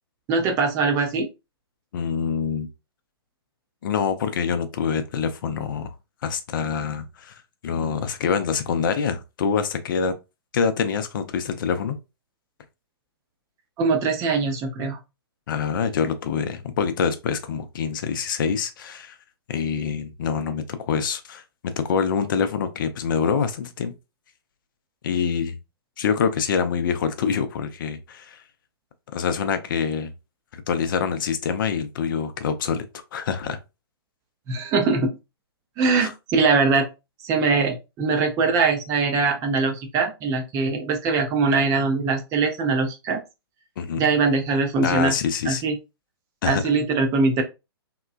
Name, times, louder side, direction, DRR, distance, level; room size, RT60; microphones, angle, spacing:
voice 1, 0.3-1.3 13.8-15.0 34.5-35.1 35.8-36.9 37.2-43.2 44.0-45.1 45.5-45.8 46.4-47.4, right 4 dB, 25° right, 0.5 m, -22 dB
voice 2, 1.9-2.7 3.8-5.9 6.2-7.4 7.6-10.1 10.5-12.0 15.5-19.2 19.5-21.4 21.8-23.9 25.0-25.6 26.0-28.4 29.1-30.1 30.7-32.8 33.1-33.6 36.0-36.1 43.8-44.1 44.8-45.6 46.4-46.6, left 6 dB, 50° left, 0.5 m, -25 dB
2.9 x 2.2 x 2.4 m
figure-of-eight pair, 120°, 13 cm